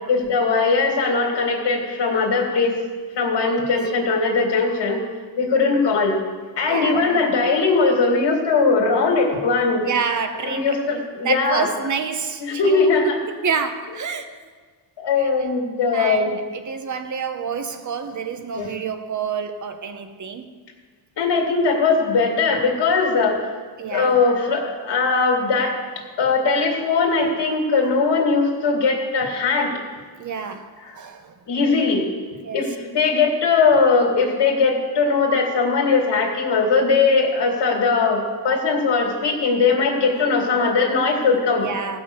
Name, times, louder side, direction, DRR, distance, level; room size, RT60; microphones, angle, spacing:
voice 1, 0.1-2.8 3.1-5.0 5.4-6.2 6.6-9.9 10.4-11.7 12.4-13.2 15.0-16.4 18.5-18.7 21.2-23.5 23.9-25.7 26.2-29.7 30.8-31.0 31.5-32.1 32.5-41.7, left 4 dB, 70° left, 2 dB, 2.4 m, -20 dB
voice 2, 6.7-7.0 9.8-10.8 11.2-14.3 15.2-15.3 15.9-20.5 23.8-24.2 30.2-31.3 32.4-32.6 38.4-38.7 41.6-42.0, right 6 dB, 45° right, 8 dB, 1.0 m, -28 dB
17.0 x 6.2 x 7.0 m, 1.5 s
wide cardioid pair, 170°, 43 cm